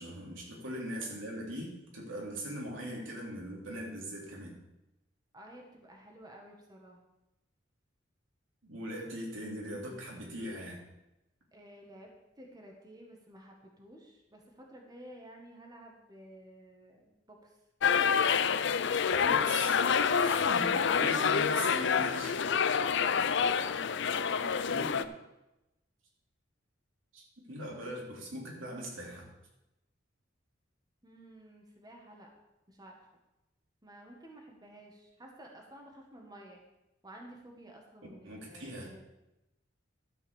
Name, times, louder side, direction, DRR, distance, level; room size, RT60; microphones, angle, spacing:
voice 1, 0.0-4.5 8.6-10.8 19.2-19.8 20.1-22.4 24.7-25.1 27.1-29.3 38.2-38.9, right 1 dB, 90° right, -2 dB, 3.3 m, -40 dB
voice 2, 5.3-7.0 11.5-12.1 12.4-17.6 23.2-23.7 24.0-24.7 31.0-32.3 32.7-32.9 33.8-36.6 37.0-39.0, right 1 dB, 20° right, 0 dB, 1.6 m, -52 dB
sound 1, 17.8-25.0, left 6 dB, 65° left, 0.5 m, -27 dB
12.5 x 5.6 x 7.1 m, 0.95 s
head